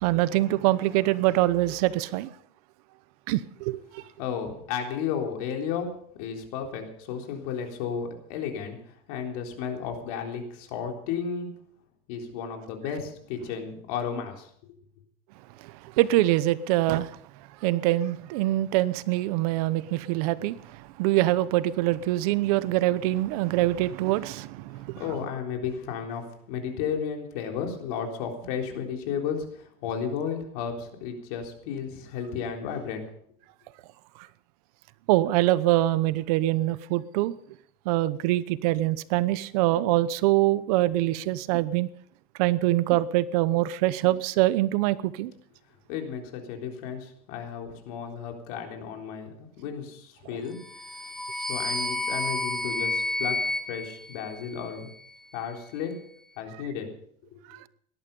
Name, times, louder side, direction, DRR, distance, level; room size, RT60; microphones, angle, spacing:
voice 1, 0.0-2.3 3.3-4.0 15.6-17.2 17.6-25.0 35.1-37.3 37.9-41.9 42.4-45.3 57.5-57.6, right 16 dB, 80° right, 0.9 m, -24 dB
voice 2, 4.2-5.9 6.2-11.5 12.1-14.5 25.0-33.0 45.9-50.6 51.4-53.4 53.7-54.9 55.3-55.9 56.4-56.9 57.3-57.4, left 7 dB, 80° left, 3.7 m, -33 dB
sound 1, 50.6-54.9, left 2 dB, ahead, 0.7 m, -31 dB
18.0 x 12.0 x 5.4 m
cardioid pair, 140°, 19 cm